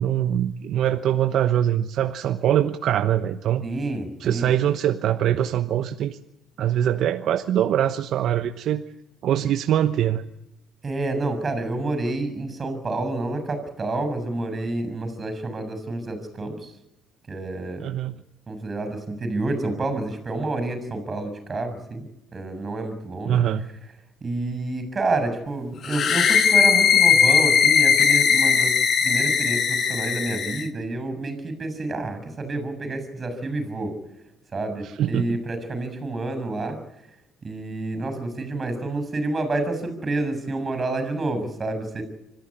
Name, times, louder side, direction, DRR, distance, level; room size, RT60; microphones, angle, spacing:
voice 1, 0.0-3.6 4.2-6.2 6.6-8.8 9.2-10.2 17.8-18.1 23.2-23.7 34.8-35.4, right 10 dB, 65° right, 9 dB, 1.1 m, -23 dB
voice 2, 3.6-4.5 10.8-16.7 17.3-17.8 18.5-22.1 22.3-23.4 24.2-28.7 29.0-33.9 34.5-36.8 37.4-42.0, right 2 dB, 30° right, 10 dB, 6.9 m, -29 dB
sound 1, 25.8-30.7, left 7 dB, 50° left, 2.2 m, -19 dB
25.5 x 14.5 x 9.9 m, 0.88 s
cardioid pair, 105°, 0 cm